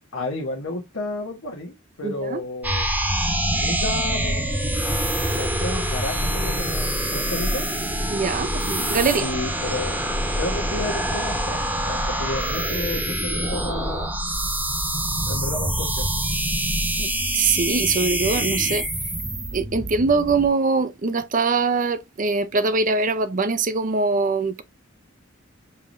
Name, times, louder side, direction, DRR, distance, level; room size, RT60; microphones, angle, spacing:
voice 1, 0.1-2.9 3.5-4.5 5.3-7.6 9.2-10.0 10.4-14.1 15.2-16.1, left 2 dB, 80° left, 1.0 m, -31 dB
voice 2, 2.0-2.4 8.1-9.3 17.0-18.8 19.5-24.6, right 4 dB, 40° right, 0.5 m, -23 dB
sound 1, 2.6-20.5, right 1 dB, 10° right, 1.0 m, -25 dB
5.5 x 3.1 x 2.5 m
head